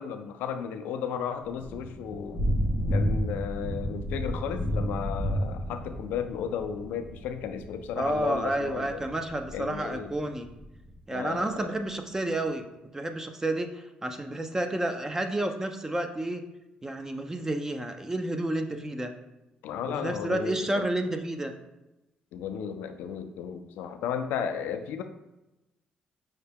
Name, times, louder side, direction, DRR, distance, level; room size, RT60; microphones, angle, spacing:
voice 1, 0.0-2.5 2.9-9.0 9.5-10.1 11.1-11.7 19.6-20.9 22.3-25.0, left 7 dB, 90° left, 8 dB, 0.3 m, -34 dB
Thunder / Rain, 1.4-10.9, equal, 65° right, 1.2 m, -32 dB
voice 2, 8.0-10.5 11.1-12.7 12.9-16.4 16.8-19.1 19.9-21.5, right 1 dB, 15° right, 6 dB, 0.4 m, -30 dB
5.5 x 2.1 x 3.4 m, 0.97 s
cardioid pair, 80°, 3 cm